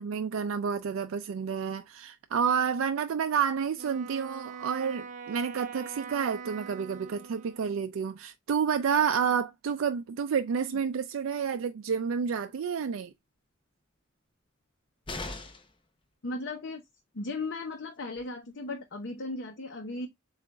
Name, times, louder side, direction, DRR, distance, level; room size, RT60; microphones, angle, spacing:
voice 1, 0.0-13.1, right 6 dB, 90° right, 0.4 m, -29 dB
Wind instrument woodwind instrument, 3.8-7.9, right 6 dB, 40° right, 0.6 m, -43 dB
sound 1, 15.1-15.8 17.8-17.9 18.2-18.3, left 2 dB, 25° left, 0.6 m, -39 dB
voice 2, 16.2-16.8 17.1-20.1, left 2 dB, 60° left, 0.7 m, -36 dB
7.4 x 2.5 x 2.2 m
head